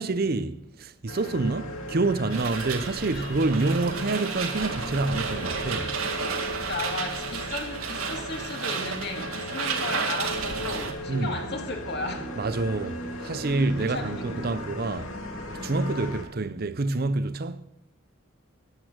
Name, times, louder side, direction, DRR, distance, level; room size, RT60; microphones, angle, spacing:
voice 1, 0.0-5.9 11.1-11.4 12.4-15.1 15.6-17.7, right 3 dB, 45° right, 0.6 m, -27 dB
sound 1, 1.1-16.2, equal, 85° left, 2.8 m, -37 dB
sound 2, 2.3-10.9, right 5 dB, 85° right, 1.9 m, -32 dB
voice 2, 6.6-12.3 13.9-14.6, left 2 dB, 50° left, 2.4 m, -35 dB
14.0 x 10.5 x 6.3 m
head